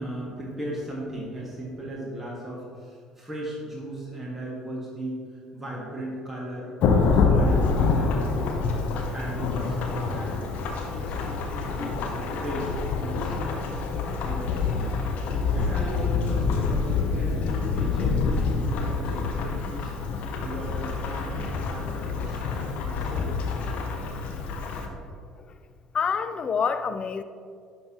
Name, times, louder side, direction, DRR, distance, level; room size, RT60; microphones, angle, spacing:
voice 1, 0.0-8.7 9.1-10.5 10.9-14.8 15.5-19.9 20.4-23.3, right 1 dB, 10° right, -5 dB, 1.7 m, -37 dB
Thunderstorm / Rain, 6.8-24.9, left 4 dB, 55° left, 0.8 m, -26 dB
voice 2, 25.9-27.2, left 6 dB, 35° left, 11 dB, 0.4 m, -27 dB
10.5 x 5.4 x 3.0 m, 2.2 s
figure-of-eight pair, 55°, 3 cm